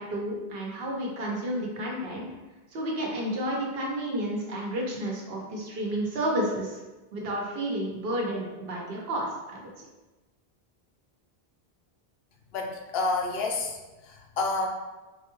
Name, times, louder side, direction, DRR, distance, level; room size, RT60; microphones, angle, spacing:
voice 1, 0.0-2.3 2.7-6.8 7.1-9.6, right 1 dB, 70° right, -2 dB, 1.0 m, -31 dB
voice 2, 12.5-14.7, left 3 dB, 75° left, 1 dB, 0.8 m, -29 dB
4.1 x 2.2 x 3.0 m, 1.1 s
omnidirectional pair, 1.1 m